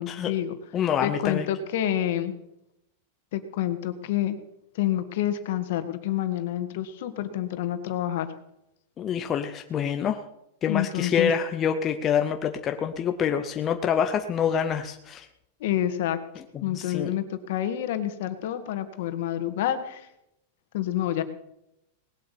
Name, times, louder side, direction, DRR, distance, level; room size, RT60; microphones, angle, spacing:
voice 1, 0.0-0.5 1.0-2.3 3.3-4.4 4.7-8.3 10.7-11.3 15.6-16.2 16.6-20.1 20.7-21.2, left 12 dB, 55° left, 9 dB, 1.9 m, -28 dB
voice 2, 0.7-1.5 9.0-10.2 10.6-15.3 16.6-17.1, left 8 dB, 20° left, 6 dB, 0.7 m, -26 dB
19.5 x 8.3 x 8.5 m, 0.82 s
supercardioid pair, 170°, 0 cm